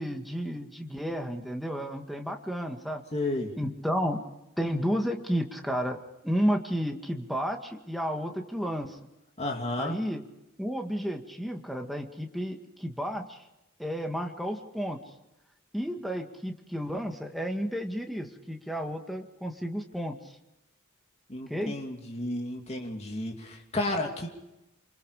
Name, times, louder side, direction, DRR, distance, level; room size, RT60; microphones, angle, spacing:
voice 1, 0.0-3.0 3.6-4.2 4.6-9.0 9.8-10.2 10.6-13.4 13.8-15.0 15.7-20.2 21.5-21.8, equal, ahead, 3 dB, 2.0 m, -32 dB
voice 2, 3.1-3.5 9.4-10.0 21.3-24.3, left 2 dB, 30° left, 1 dB, 2.8 m, -32 dB
28.0 x 25.5 x 5.0 m, 0.91 s
head